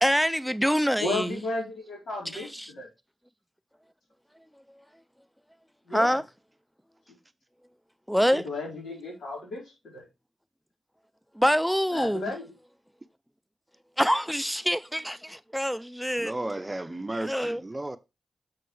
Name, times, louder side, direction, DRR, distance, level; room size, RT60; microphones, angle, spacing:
voice 1, 0.0-1.4 2.3-2.7 5.9-6.2 8.1-8.5 11.4-12.3 14.0-16.3 17.2-17.6, equal, ahead, 0.4 m, -25 dB
voice 2, 1.0-2.9 5.9-6.2 8.2-9.6 9.9-10.1 11.9-12.4, left 2 dB, 80° left, 4.5 m, -34 dB
voice 3, 16.2-18.0, right 1 dB, 20° right, 0.7 m, -33 dB
7.0 x 6.6 x 3.2 m
cardioid pair, 60°, 0 cm